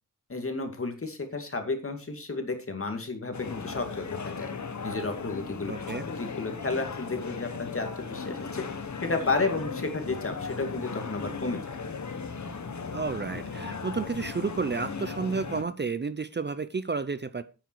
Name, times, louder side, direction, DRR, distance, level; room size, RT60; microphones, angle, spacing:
voice 1, 0.3-4.5 4.8-5.7 6.0-8.6 9.0-11.6, left 3 dB, 40° left, 2.4 m, -32 dB
sound 1, 3.3-15.6, left 5 dB, 60° left, 1.4 m, -37 dB
voice 2, 5.7-6.0 12.9-17.4, right 4 dB, 35° right, 0.6 m, -31 dB
9.4 x 9.2 x 4.6 m
wide cardioid pair, 125°, 32 cm